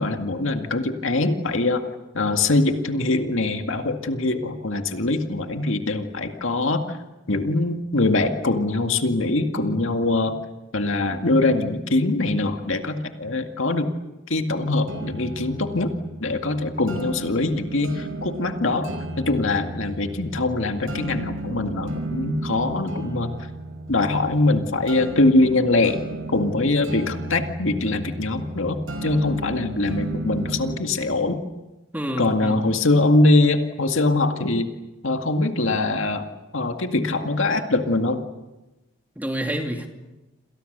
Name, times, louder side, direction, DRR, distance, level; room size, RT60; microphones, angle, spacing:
voice 1, 0.0-1.8 2.1-7.0 7.3-10.4 10.7-13.9 14.3-15.9 16.2-18.9 19.2-23.3 23.9-26.0 26.3-31.4 32.2-34.7 35.0-36.3 36.5-38.2, left 2 dB, 65° left, 5 dB, 2.1 m, -22 dB
sound 1, 14.9-30.9, right 2 dB, 70° right, 5.1 m, -34 dB
voice 2, 31.9-32.6 39.2-39.9, right 1 dB, 10° right, 3 dB, 2.5 m, -28 dB
28.5 x 27.5 x 6.8 m, 1.0 s
head